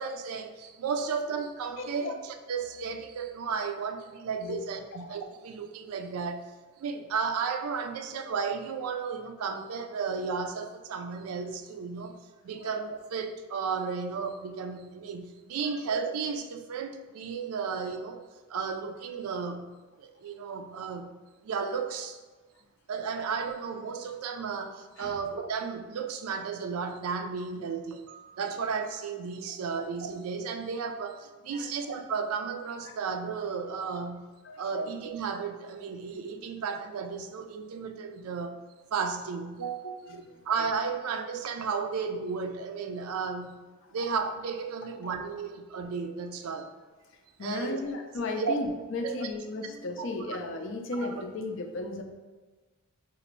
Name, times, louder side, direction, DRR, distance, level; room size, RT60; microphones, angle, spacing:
voice 1, 0.0-2.1 2.5-6.5 6.8-12.2 12.4-18.2 18.5-19.7 20.0-21.2 21.4-22.2 22.9-34.3 34.6-38.6 38.9-43.6 43.9-46.7 47.4-47.8 48.4-48.5 49.0-49.3 50.0-50.1, right 5 dB, 80° right, 7 dB, 0.4 m, -34 dB
voice 2, 1.8-2.2 4.4-4.6 5.1-5.2 12.5-12.8 15.6-15.8 25.0-25.2 29.7-29.8 31.5-31.8 32.9-33.0 34.4-34.6 39.8-40.4 44.0-44.1 47.1-52.0, left 2 dB, 55° left, 4 dB, 0.4 m, -36 dB
4.1 x 2.5 x 3.0 m, 1.3 s
head